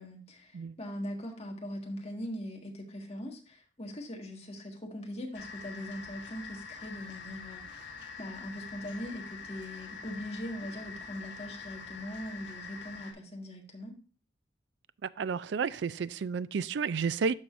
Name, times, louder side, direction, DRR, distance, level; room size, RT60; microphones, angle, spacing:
voice 1, 0.0-13.9, equal, 35° left, 1.7 m, -41 dB
sound 1, 5.3-13.1, left 5 dB, 70° left, 1.7 m, -45 dB
voice 2, 15.0-17.3, right 5 dB, 70° right, 0.4 m, -31 dB
13.0 x 4.8 x 2.5 m
head